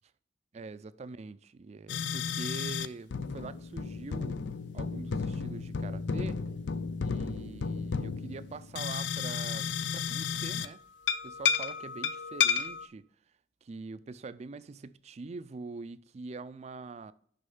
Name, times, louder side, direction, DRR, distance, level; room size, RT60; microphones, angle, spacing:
voice 1, 0.5-4.4 4.7-6.4 7.0-10.8 11.2-13.1 13.6-17.1, right 3 dB, 40° right, 0.4 m, -44 dB
sound 1, 1.9-2.9 3.1-10.7 11.1-12.9, left 6 dB, 90° left, 0.4 m, -33 dB
6.5 x 5.4 x 5.4 m
head